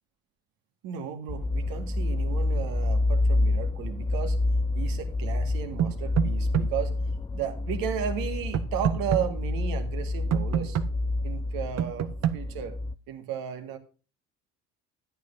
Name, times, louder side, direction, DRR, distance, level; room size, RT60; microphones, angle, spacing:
voice 1, 0.8-4.4 4.8-6.9 7.3-10.8 11.2-12.8 13.1-13.8, right 9 dB, 65° right, 6 dB, 1.8 m, -34 dB
sound 1, 1.3-12.9, left 2 dB, 15° left, 0.5 m, -28 dB
sound 2, 5.8-6.7 8.5-9.2 10.3-10.9 11.8-12.4, right 10 dB, 45° right, 0.9 m, -25 dB
13.5 x 9.5 x 2.6 m, 0.35 s
hypercardioid pair, 55°, 37 cm